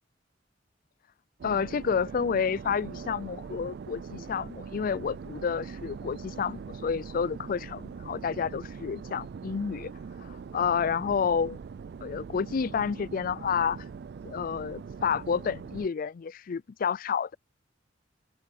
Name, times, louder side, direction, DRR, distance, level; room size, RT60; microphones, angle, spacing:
voice 1, 1.4-9.9 10.2-11.6 12.0-13.8 14.2-17.3, left 6 dB, 50° left, 0.4 m, -30 dB
sound 1, 1.4-15.9, right 5 dB, 60° right, 0.3 m, -42 dB
head